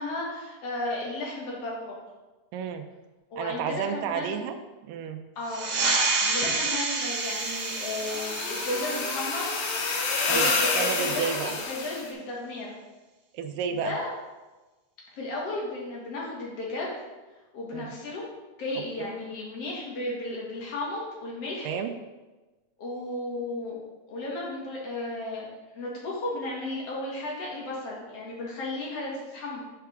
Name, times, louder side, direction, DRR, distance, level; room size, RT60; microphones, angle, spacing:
voice 1, 0.0-1.9 3.3-4.4 5.4-5.7 6.2-9.5 10.3-12.7 13.7-14.1 15.1-16.9 17.5-18.2 18.6-21.7 22.8-23.8 24.1-25.5 25.7-29.6, left 2 dB, 50° left, -4 dB, 2.7 m, -34 dB
voice 2, 2.5-2.9 3.4-4.6 4.8-5.2 10.3-10.5 10.8-11.5 13.3-13.9 17.7-17.9 19.0-19.1 21.6-21.9, right 7 dB, 90° right, 6 dB, 2.3 m, -31 dB
sound 1, 5.4-10.6, right 3 dB, 75° right, 2.9 m, -29 dB
sound 2, 7.1-12.1, left 3 dB, 75° left, 2.6 m, -29 dB
11.5 x 4.8 x 3.5 m, 1.2 s
omnidirectional pair, 3.7 m